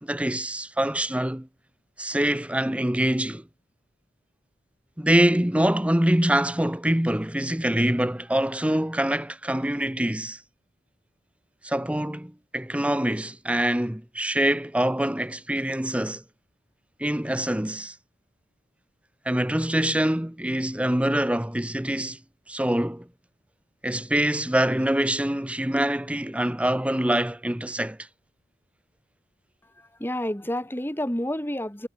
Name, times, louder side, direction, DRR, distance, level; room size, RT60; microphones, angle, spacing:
voice 1, 0.0-1.5 2.0-3.5 5.0-10.4 11.6-16.2 17.0-17.9 19.2-22.2 22.5-23.1 23.8-28.0, right 1 dB, 5° right, 0.9 m, -25 dB
voice 2, 29.8-31.9, left 1 dB, 10° left, 2.6 m, -29 dB
head